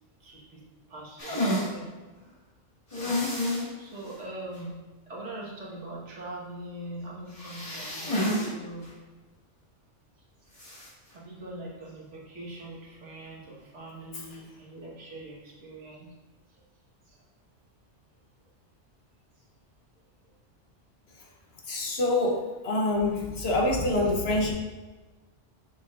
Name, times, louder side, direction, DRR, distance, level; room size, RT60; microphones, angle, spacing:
voice 1, 0.2-0.6 0.9-1.8 3.8-4.8 5.1-8.9 11.1-16.1 17.1-17.2, right 1 dB, 70° right, -4 dB, 1.7 m, -42 dB
sound 1, 1.2-1.7 2.9-3.7 4.1-4.2 4.6-4.7 7.3-8.5 8.8-8.9 10.5-10.9, left 1 dB, 30° left, 1.8 m, -29 dB
voice 2, 21.7-24.5, left 2 dB, 60° left, 1 dB, 1.1 m, -26 dB
6.5 x 6.0 x 2.4 m, 1.2 s
omnidirectional pair, 1.3 m